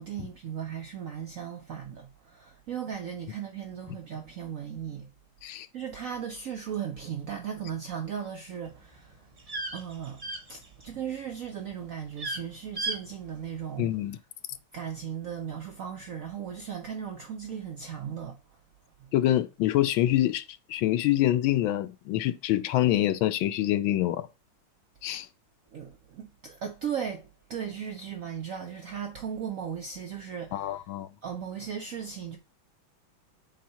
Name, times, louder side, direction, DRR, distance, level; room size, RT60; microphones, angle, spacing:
voice 1, 0.0-5.1 5.7-9.1 9.7-10.2 10.5-13.9 14.7-18.4 25.7-30.7 31.2-32.4, right 8 dB, 70° right, 0.8 m, -37 dB
sound 1, 8.7-11.1 11.4-11.7 12.0-12.4 12.8-13.0 13.3-13.4, right 2 dB, 45° right, 0.4 m, -35 dB
voice 2, 13.8-14.2 19.1-24.3 25.0-25.3 30.5-31.1, left 14 dB, 80° left, 1.3 m, -26 dB
7.5 x 2.8 x 5.5 m
omnidirectional pair, 2.2 m